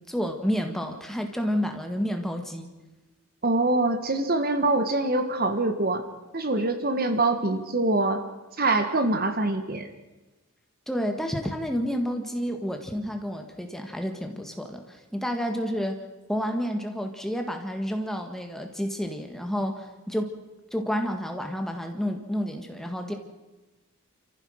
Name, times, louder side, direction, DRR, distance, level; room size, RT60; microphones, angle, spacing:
voice 1, 0.1-2.7 10.9-16.0 16.3-20.3 20.7-23.1, equal, ahead, 4 dB, 1.6 m, -30 dB
voice 2, 3.4-6.0 6.3-8.2 8.6-9.9, right 2 dB, 40° right, 7 dB, 1.5 m, -24 dB
29.5 x 15.0 x 6.5 m, 1.1 s
head